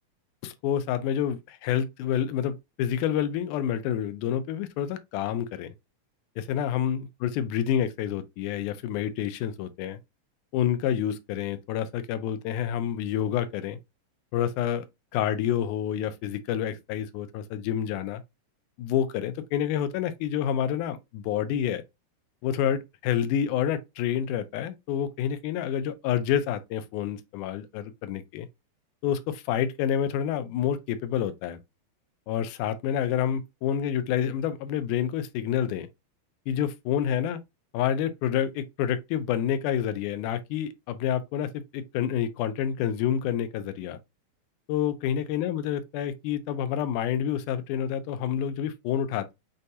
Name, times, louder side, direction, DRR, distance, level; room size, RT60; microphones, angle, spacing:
voice 1, 0.4-5.7 6.4-10.0 10.5-13.8 14.3-14.9 15.1-18.2 18.8-21.8 22.4-28.5 29.0-31.6 32.3-35.9 36.5-37.4 37.7-44.0 44.7-49.3, left 9 dB, 85° left, 2.1 m, -28 dB
6.4 x 2.3 x 2.7 m
omnidirectional pair, 3.6 m